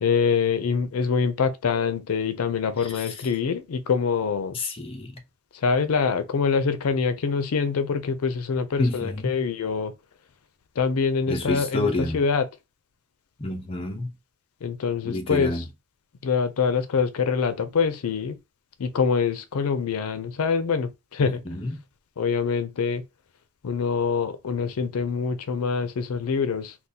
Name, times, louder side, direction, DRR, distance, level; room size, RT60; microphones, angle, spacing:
voice 1, 0.0-4.5 5.6-9.9 10.8-12.4 14.6-15.6 16.2-18.4 18.8-21.4 22.2-23.0 23.6-26.7, left 5 dB, 85° left, 0.4 m, -25 dB
voice 2, 4.5-5.2 8.8-9.4 11.3-12.2 13.4-14.1 15.0-15.7 21.2-21.8, left 2 dB, 25° left, 0.6 m, -28 dB
3.7 x 2.3 x 2.7 m
head